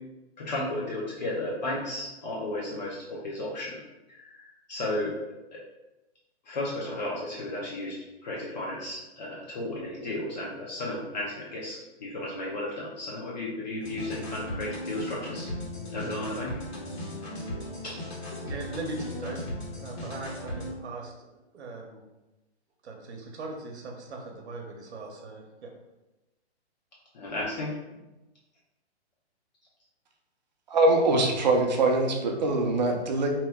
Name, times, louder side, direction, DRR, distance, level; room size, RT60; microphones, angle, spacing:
voice 1, 0.4-3.8 4.1-5.6 6.5-15.5 15.9-16.6 17.8-18.0 27.1-27.8, left 1 dB, 40° left, -5 dB, 0.6 m, -34 dB
sound 1, 13.8-20.7, left 1 dB, 70° left, 1.4 m, -37 dB
voice 2, 18.4-19.4 19.7-21.3 21.5-22.0 22.8-25.7, right 3 dB, 75° right, 1 dB, 0.8 m, -39 dB
voice 3, 30.7-33.3, right 2 dB, 40° right, 2 dB, 0.5 m, -23 dB
2.8 x 2.1 x 3.4 m, 1.0 s
hypercardioid pair, 160°, 34 cm